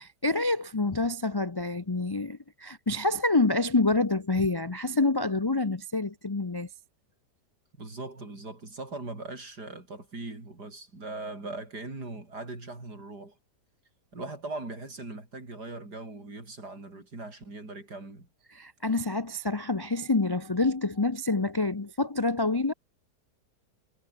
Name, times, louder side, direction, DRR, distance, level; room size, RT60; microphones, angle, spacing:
voice 1, 0.0-6.7 18.5-22.7, left 3 dB, 25° left, 0.5 m, -27 dB
voice 2, 7.8-13.4 14.1-18.3, right 2 dB, 85° right, 6.3 m, -40 dB
omnidirectional pair, 1.7 m